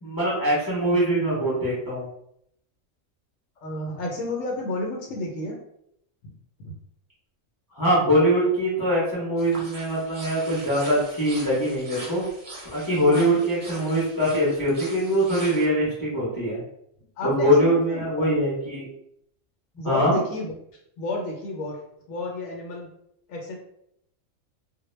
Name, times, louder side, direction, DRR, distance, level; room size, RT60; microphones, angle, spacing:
voice 1, 0.0-2.1 7.8-12.2 12.7-16.6 17.2-18.8 19.8-20.2, equal, 20° left, -7 dB, 0.5 m, -23 dB
voice 2, 3.6-5.6 6.6-6.7 13.1-13.4 17.2-18.0 19.8-20.5 21.0-21.8 22.1-22.9 23.3-23.6, left 2 dB, 80° left, -1 dB, 0.9 m, -31 dB
sound 1, 9.4-15.7, right 2 dB, 45° right, 0.7 m, -42 dB
2.2 x 2.1 x 3.0 m, 0.75 s
omnidirectional pair, 1.4 m